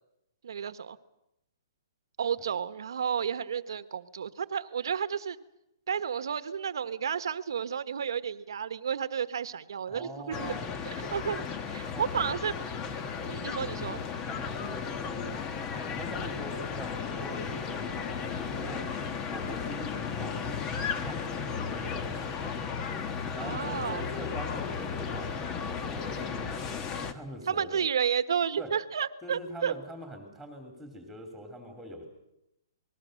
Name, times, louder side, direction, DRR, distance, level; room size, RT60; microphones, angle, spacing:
voice 1, 0.4-1.0 2.2-5.4 5.9-10.6 10.8-12.5 13.3-14.0 23.4-24.0 27.5-29.7, right 7 dB, 75° right, 12 dB, 1.3 m, -32 dB
voice 2, 9.9-10.7 11.9-12.2 14.3-15.3 15.9-18.8 19.3-20.7 21.1-22.4 23.3-26.5 27.1-27.8 28.6-28.7 29.2-32.1, equal, ahead, 3 dB, 2.8 m, -43 dB
sound 1, 10.3-27.1, left 6 dB, 20° left, 1.3 m, -35 dB
27.5 x 21.0 x 6.5 m, 0.85 s
hypercardioid pair, 160°, 2 cm